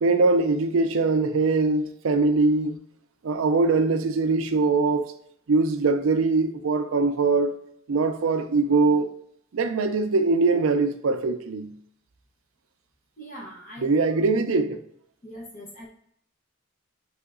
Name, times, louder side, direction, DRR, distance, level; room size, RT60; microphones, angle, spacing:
voice 1, 0.0-2.8 3.2-5.1 5.5-7.5 7.9-9.1 9.5-11.7 13.8-14.8, right 3 dB, 75° right, 0.5 m, -22 dB
voice 2, 13.2-14.2 15.2-15.9, right 1 dB, 35° left, 1.0 m, -41 dB
3.8 x 3.4 x 3.6 m
head